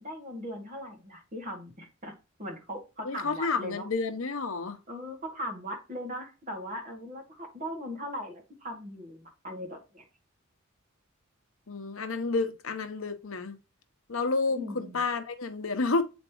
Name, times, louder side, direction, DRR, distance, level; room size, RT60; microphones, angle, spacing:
voice 1, 0.0-2.1 2.4-3.9 4.9-10.0 14.5-15.0, equal, 40° right, 2.2 m, -39 dB
voice 2, 3.0-4.8 11.7-13.6 14.1-16.0, left 3 dB, 80° left, 0.9 m, -30 dB
8.0 x 4.4 x 3.0 m
head